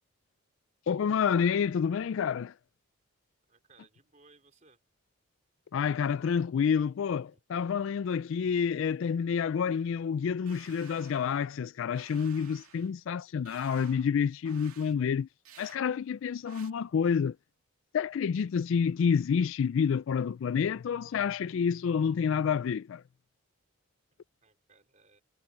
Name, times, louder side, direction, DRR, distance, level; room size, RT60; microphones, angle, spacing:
voice 1, 0.9-2.5 5.7-15.3 15.6-17.4 17.9-23.0, left 6 dB, 65° left, 0.3 m, -28 dB
voice 2, 3.5-4.8 24.4-25.2, right 4 dB, 35° right, 4.1 m, -62 dB
sound 1, 10.5-11.6 12.0-12.9 13.5-14.1 14.5-14.9 15.5-15.8 16.5-16.7, right 8 dB, 85° right, 2.3 m, -54 dB
head